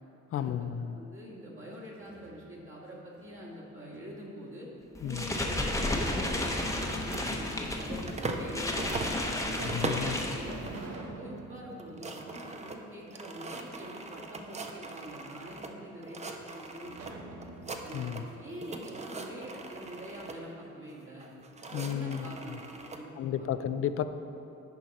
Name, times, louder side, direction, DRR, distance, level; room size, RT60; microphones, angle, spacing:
voice 1, 0.3-1.0 5.0-5.3 9.6-10.2 17.9-18.2 21.7-22.6 23.2-24.0, left 9 dB, 50° left, 11 dB, 0.4 m, -33 dB
voice 2, 0.8-4.7 5.0-9.2 9.8-16.9 17.8-21.3 21.8-23.1 23.4-23.5, equal, 45° right, -4 dB, 1.7 m, -45 dB
sound 1, 1.7-2.7 3.2-4.4 5.7-6.5 7.4-7.5 8.3-8.4 9.0-13.1 13.5-13.6 16.9-19.7, right 3 dB, 60° right, 0.8 m, -48 dB
sound 2, 4.9-10.9, left 1 dB, 10° left, 0.8 m, -33 dB
sound 3, 6.8-8.5 8.8-10.2 10.6-11.1 11.4-11.5 11.7-15.7 16.0-17.1 17.4-18.3 18.6-20.4 21.2-23.0, right 3 dB, 20° right, 0.6 m, -40 dB
10.5 x 4.7 x 4.1 m, 2.8 s
cardioid pair, 90°, 30 cm